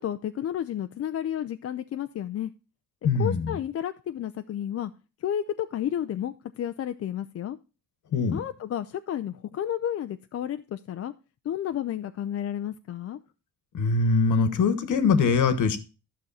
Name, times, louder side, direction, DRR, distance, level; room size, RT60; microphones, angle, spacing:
voice 1, 0.0-2.5 3.2-4.9 5.2-7.6 8.3-11.1 11.4-13.2, left 10 dB, 45° left, 0.5 m, -31 dB
voice 2, 3.0-3.5 8.1-8.4 13.7-15.8, left 4 dB, 60° left, 1.3 m, -22 dB
11.5 x 6.3 x 4.1 m
cardioid pair, 95°, 34 cm